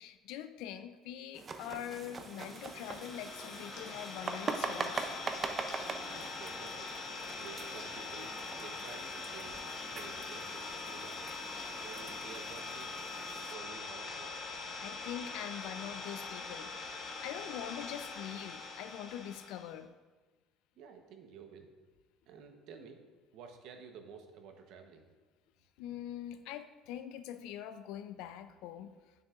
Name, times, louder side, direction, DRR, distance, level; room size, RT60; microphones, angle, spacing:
voice 1, 0.0-5.1 14.8-19.9 25.8-28.9, left 10 dB, 75° left, 11 dB, 0.4 m, -44 dB
sound 1, 1.3-13.5, right 4 dB, 25° right, 0.5 m, -43 dB
Idling, 2.0-19.7, left 4 dB, 50° left, 1.0 m, -43 dB
voice 2, 5.7-6.9 7.3-8.3 8.6-11.2 11.8-13.0 13.5-14.4 20.8-21.7 22.3-23.0 23.3-25.1, right 6 dB, 65° right, 5 dB, 0.9 m, -52 dB
9.3 x 6.6 x 2.4 m, 1.3 s
cardioid pair, 145°, 0 cm